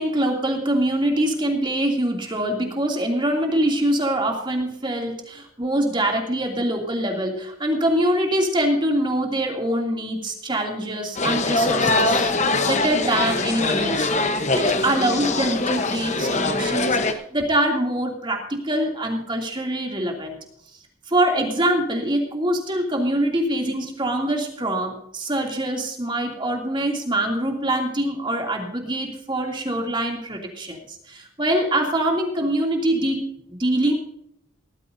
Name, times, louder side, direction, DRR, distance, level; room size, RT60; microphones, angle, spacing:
voice 1, 0.0-12.3 12.6-20.4 21.1-33.9, right 1 dB, 25° right, 1 dB, 2.8 m, -24 dB
sound 1, 11.1-17.1, left 2 dB, 35° left, 1.1 m, -22 dB
18.5 x 13.5 x 2.7 m, 0.71 s
head